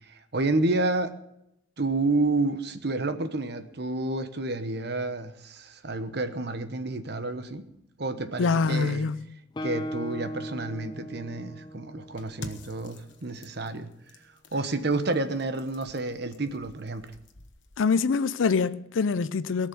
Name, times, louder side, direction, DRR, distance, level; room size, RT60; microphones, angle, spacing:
voice 1, 0.1-1.1 1.8-7.6 8.0-9.1 9.6-13.9 14.5-17.1, right 2 dB, 60° right, 1.1 m, -29 dB
voice 2, 8.4-9.3 17.8-19.7, left 5 dB, 85° left, 0.5 m, -25 dB
Guitar, 9.5-13.2, equal, 25° left, 0.5 m, -38 dB
sound 1, 12.2-18.0, left 2 dB, 65° left, 1.3 m, -49 dB
18.0 x 6.5 x 8.5 m
head